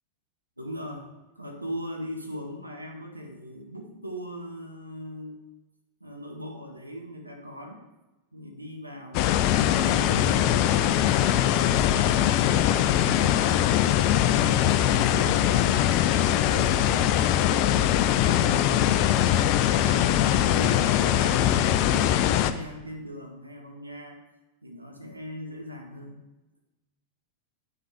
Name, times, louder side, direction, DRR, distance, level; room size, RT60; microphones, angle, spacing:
voice 1, 0.6-5.4 6.0-7.8 8.3-9.3 9.6-10.9 11.2-15.9 16.2-18.9 19.6-24.2 24.6-26.2, equal, 85° right, 2 dB, 1.1 m, -40 dB
sound 1, 9.1-22.5, left 11 dB, 45° left, 0.4 m, -22 dB
9.0 x 5.7 x 4.9 m, 1.1 s
figure-of-eight pair, 90°, 0 cm